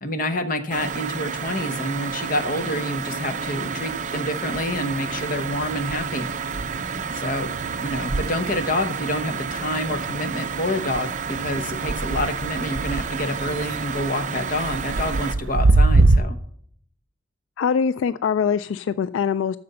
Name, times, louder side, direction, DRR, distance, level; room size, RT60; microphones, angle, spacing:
voice 1, 0.0-6.3 7.1-7.5 7.8-16.4, left 1 dB, 45° left, 9 dB, 1.0 m, -27 dB
sound 1, 0.7-15.3, right 5 dB, 40° right, 0.6 m, -30 dB
sound 2, 2.9-4.2 4.5-16.2, right 2 dB, 75° right, 0.7 m, -26 dB
voice 2, 17.6-19.6, left 6 dB, 75° left, 16 dB, 0.3 m, -23 dB
9.3 x 6.7 x 6.8 m, 0.64 s
head